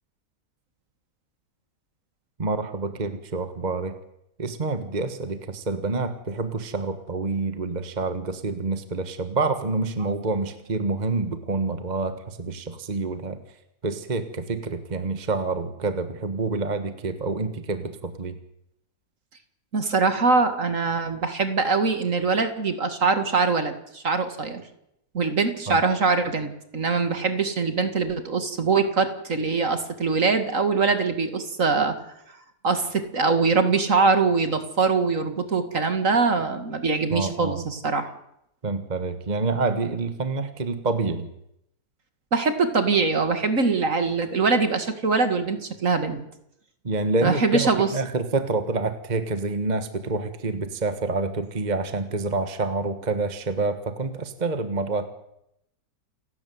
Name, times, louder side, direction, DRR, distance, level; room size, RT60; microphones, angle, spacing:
voice 1, 2.4-4.0 4.4-13.4 13.8-18.3 25.7-25.8 37.1-37.6 38.6-41.3 46.8-55.1, right 3 dB, 25° right, 9 dB, 1.5 m, -27 dB
voice 2, 19.7-24.6 25.1-31.9 32.6-38.1 42.3-46.2 47.2-47.9, right 4 dB, 50° right, 8 dB, 2.4 m, -23 dB
29.0 x 13.0 x 9.5 m, 0.80 s
omnidirectional pair, 1.8 m